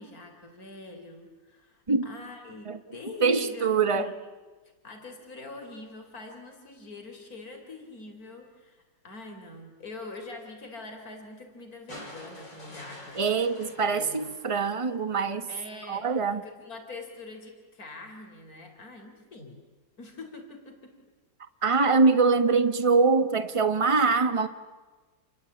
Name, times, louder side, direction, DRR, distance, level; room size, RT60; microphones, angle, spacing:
voice 1, 0.0-4.1 4.8-13.2 13.9-14.2 15.5-16.1 16.4-19.6 20.0-20.9 21.8-21.9, left 3 dB, 50° left, 4.8 m, -44 dB
voice 2, 3.2-4.1 13.1-15.5 15.9-16.4 21.6-24.5, right 4 dB, 20° right, 1.3 m, -23 dB
sound 1, 11.9-15.2 16.5-16.6, left 1 dB, 70° left, 8.3 m, -47 dB
29.5 x 23.0 x 8.8 m
omnidirectional pair, 2.0 m